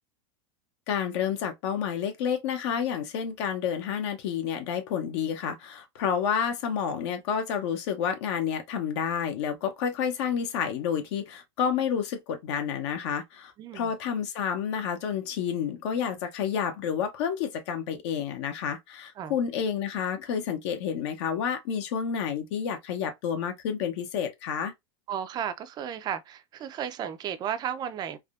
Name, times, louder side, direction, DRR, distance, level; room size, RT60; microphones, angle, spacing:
voice 1, 0.9-24.7, left 7 dB, 60° left, 0.8 m, -30 dB
voice 2, 13.6-13.9 19.2-19.4 25.1-28.2, right 9 dB, 25° right, 0.4 m, -34 dB
3.5 x 2.2 x 2.4 m
supercardioid pair, 130°, 16 cm